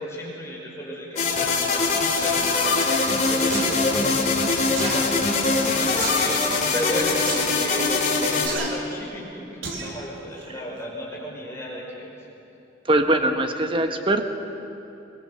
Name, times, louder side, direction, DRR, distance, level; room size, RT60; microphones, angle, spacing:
voice 1, 0.0-2.8 3.3-6.4 6.7-7.3 7.6-12.1, left 1 dB, 15° left, -4 dB, 5.4 m, -34 dB
sound 1, 1.2-8.5, left 3 dB, 40° left, 3.6 m, -22 dB
sound 2, 3.5-3.7 4.8-5.0 6.0-6.3 7.2-7.4 8.4-8.7 9.6-9.9 10.4-10.5, right 3 dB, 85° right, 3.6 m, -30 dB
voice 2, 12.9-14.2, right 1 dB, 25° right, 6 dB, 1.3 m, -21 dB
23.0 x 22.5 x 6.7 m, 3.0 s
head